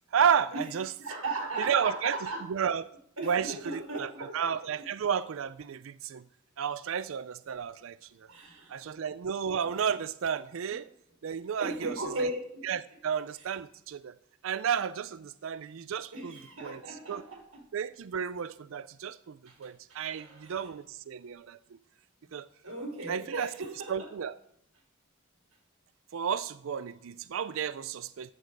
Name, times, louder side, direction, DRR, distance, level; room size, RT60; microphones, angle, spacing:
voice 1, 0.1-0.9 1.6-2.2 2.5-2.8 3.2-6.2 6.6-8.3 8.7-10.9 11.2-12.3 12.6-14.1 14.4-16.8 17.1-17.2 17.7-21.6 22.3-22.5 23.1-23.5 23.9-24.3 26.1-28.3, right 7 dB, 65° right, 0.4 m, -32 dB
voice 2, 1.0-2.5 3.2-4.5 8.3-9.0 10.7-10.8 11.6-12.6 16.1-17.6 19.5-19.6 20.0-20.7 22.6-24.1, right 2 dB, 85° right, 4.8 m, -37 dB
14.5 x 8.8 x 4.7 m
head